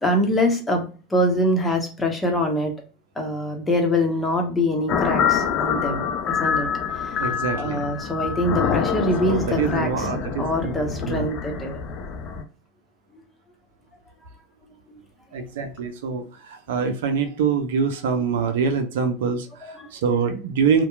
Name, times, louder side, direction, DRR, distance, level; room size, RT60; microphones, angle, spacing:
voice 1, 0.0-2.7 3.2-6.7 6.9-7.2 7.6-10.1 10.4-11.8 19.6-19.9, left 1 dB, 15° left, 2 dB, 0.9 m, -24 dB
sound 1, 4.9-12.4, left 7 dB, 45° left, 0.5 m, -26 dB
voice 2, 7.1-7.9 9.2-10.7 11.0-11.3 15.3-20.8, right 6 dB, 70° right, 7 dB, 0.5 m, -25 dB
2.8 x 2.2 x 2.3 m, 0.36 s
hypercardioid pair, 85°, 0 cm